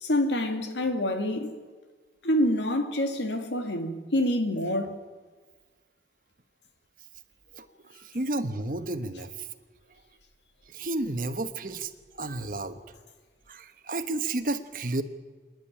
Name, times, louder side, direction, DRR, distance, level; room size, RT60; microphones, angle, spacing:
voice 1, 0.0-1.5 2.2-5.0, left 1 dB, 85° left, 2.1 m, -27 dB
voice 2, 7.6-9.5 10.7-11.9 12.2-12.8 13.5-15.0, right 2 dB, 50° right, 1.1 m, -32 dB
26.5 x 10.5 x 10.0 m
head